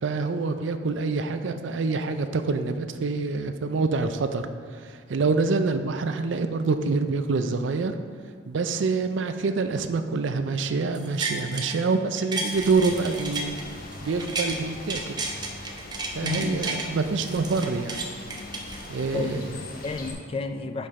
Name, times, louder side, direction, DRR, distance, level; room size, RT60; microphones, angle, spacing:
voice 1, 0.0-4.5 4.8-7.9 8.5-13.5 14.0-15.2 16.1-18.0 18.9-19.4, right 4 dB, 70° right, 8 dB, 0.4 m, -26 dB
sound 1, 10.9-11.8 12.1-14.6 14.9-16.9 17.2-19.2 19.7-19.8, right 3 dB, 20° right, 0.6 m, -32 dB
sound 2, 12.5-20.1, left 2 dB, 50° left, 0.8 m, -41 dB
voice 2, 16.2-16.6 19.1-20.9, left 3 dB, 30° left, 8 dB, 0.3 m, -32 dB
5.7 x 5.3 x 4.7 m, 2.1 s
head